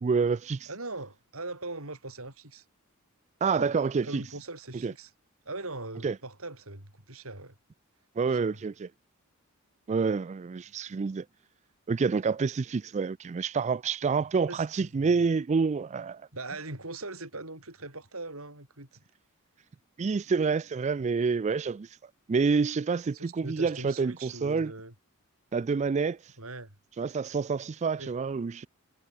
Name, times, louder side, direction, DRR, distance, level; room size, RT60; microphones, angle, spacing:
voice 1, 0.0-0.7 3.4-4.2 4.8-4.9 6.0-6.1 8.2-8.9 9.9-11.2 11.9-16.2 20.0-21.9 22.3-24.7 25.5-26.2 27.0-28.7, right 5 dB, 30° right, 0.3 m, -28 dB
voice 2, 0.7-2.6 3.6-3.7 4.0-5.1 5.5-7.5 8.4-8.6 14.5-15.1 16.3-19.0 23.1-24.9 26.4-26.8 28.0-28.1, right 2 dB, 70° right, 7.1 m, -41 dB
head